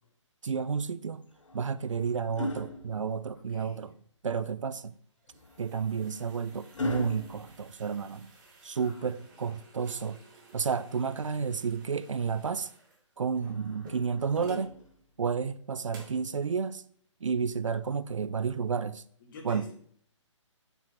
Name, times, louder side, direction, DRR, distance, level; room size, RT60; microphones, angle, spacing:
voice 1, 0.4-1.2 1.5-3.9 4.2-4.9 5.6-8.3 8.6-10.2 10.5-12.7 13.2-14.8 15.2-16.8 17.2-19.0 19.4-19.7, right 6 dB, 75° right, 0.5 m, -31 dB
sound 1, 1.2-3.7 5.3-8.5 10.2-11.4 13.4-15.2 16.4-16.6, left 2 dB, 75° left, 1.2 m, -41 dB
voice 2, 3.4-3.8 8.8-9.1 9.4-9.5 19.2-19.7, left 3 dB, 40° left, 2.1 m, -48 dB
sound 2, 4.9-14.7 15.3-15.4 15.9-16.3, right 3 dB, 40° right, 2.2 m, -54 dB
7.1 x 5.9 x 4.1 m
figure-of-eight pair, 140°, 16 cm